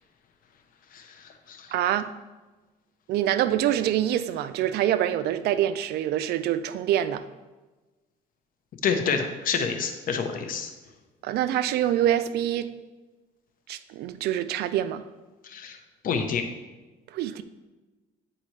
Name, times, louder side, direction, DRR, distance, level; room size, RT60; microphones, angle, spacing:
voice 1, 0.9-1.7 8.8-10.7 15.4-15.8 16.0-16.4, left 6 dB, 55° left, 6 dB, 0.8 m, -28 dB
voice 2, 1.7-2.1 3.1-7.2 11.2-12.7 13.7-15.0 17.1-17.4, right 11 dB, 70° right, 13 dB, 0.4 m, -25 dB
8.9 x 4.2 x 3.2 m, 1.2 s
cardioid pair, 110°, 17 cm